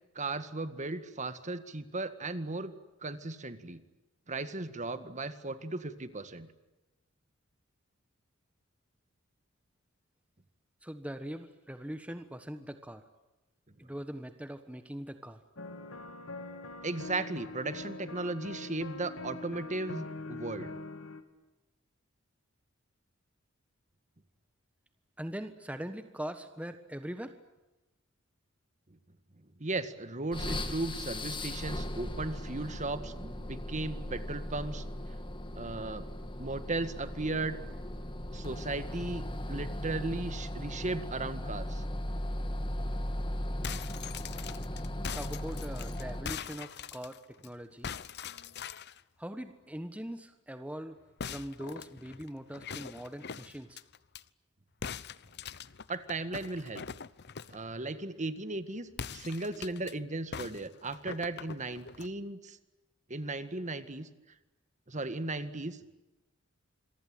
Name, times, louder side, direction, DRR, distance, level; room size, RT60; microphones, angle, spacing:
voice 1, 0.2-2.8 3.0-3.8 4.3-6.5 16.8-20.7 29.6-34.8 35.5-36.1 36.4-37.6 38.3-41.8 55.9-56.8 57.5-62.6 63.1-64.1 64.9-65.8, right 2 dB, 35° right, 11 dB, 1.9 m, -36 dB
voice 2, 10.8-13.0 13.8-15.4 25.2-27.4 45.1-47.9 49.2-51.0 51.3-53.8, equal, 5° right, 8 dB, 1.3 m, -41 dB
sound 1, 15.6-21.2, left 2 dB, 80° left, 2.9 m, -43 dB
sound 2, 30.3-46.5, left 1 dB, 25° left, 2.3 m, -38 dB
sound 3, 43.6-47.5 47.8-49.0 51.2-54.2 54.8-57.6 58.9-59.9 60.3-62.1, left 6 dB, 55° left, 0.9 m, -42 dB
27.5 x 23.5 x 9.2 m, 1.0 s
head